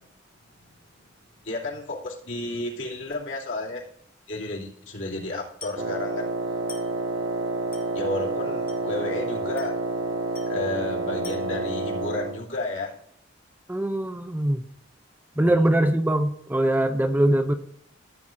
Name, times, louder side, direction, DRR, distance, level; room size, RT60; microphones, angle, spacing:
voice 1, 1.4-3.8 4.3-6.3 7.9-9.8 10.5-12.9 15.5-15.7, left 2 dB, 75° left, -4 dB, 2.6 m, -32 dB
Glass, 5.6-6.0 6.7-7.0 7.7-8.0 8.7-9.0 9.6-9.9 10.3-10.7 11.2-11.7, left 4 dB, 15° left, 3.6 m, -45 dB
Wind instrument woodwind instrument, 5.7-12.4, right 2 dB, 75° right, 1.3 m, -29 dB
voice 2, 13.7-14.6 15.4-17.5, right 1 dB, 10° right, 8 dB, 0.4 m, -22 dB
15.0 x 8.4 x 2.5 m, 0.69 s
head